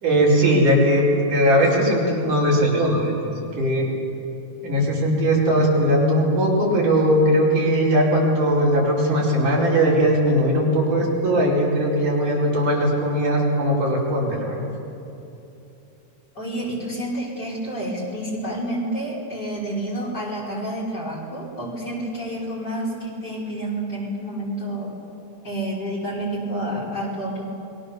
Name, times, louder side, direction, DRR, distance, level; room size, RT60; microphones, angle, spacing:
voice 1, 0.0-3.3 3.6-3.9 4.6-14.7, equal, 80° right, -5 dB, 6.7 m, -19 dB
voice 2, 16.4-24.9 25.4-27.4, right 1 dB, 30° left, -4 dB, 5.9 m, -29 dB
28.5 x 22.5 x 7.1 m, 2.9 s
omnidirectional pair, 3.5 m